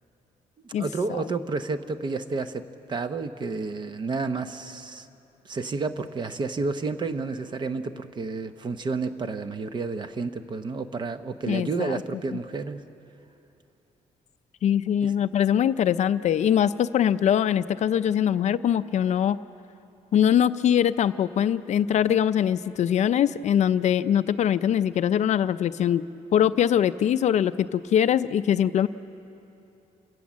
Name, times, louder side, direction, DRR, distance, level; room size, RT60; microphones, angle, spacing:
voice 1, 0.6-2.6 2.9-5.1 5.4-12.8 15.0-15.1, right 4 dB, 30° right, 10 dB, 0.8 m, -30 dB
voice 2, 11.5-12.0 14.6-19.4 20.1-26.0 26.3-28.9, left 9 dB, 55° left, 13 dB, 0.5 m, -22 dB
29.0 x 17.5 x 7.4 m, 2.8 s
cardioid pair, 180°, 14 cm